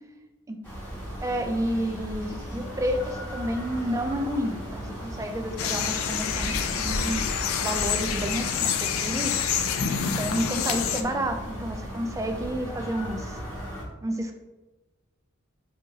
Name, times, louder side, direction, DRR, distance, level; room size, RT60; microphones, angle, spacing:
sound 1, 0.6-13.8, equal, 10° left, 1.0 m, -36 dB
voice 1, 1.2-9.3 10.0-13.4 14.0-14.4, equal, 15° right, 5 dB, 0.3 m, -30 dB
sound 2, 5.6-11.0, left 7 dB, 90° left, 0.4 m, -27 dB
4.7 x 2.8 x 2.7 m, 1.1 s
head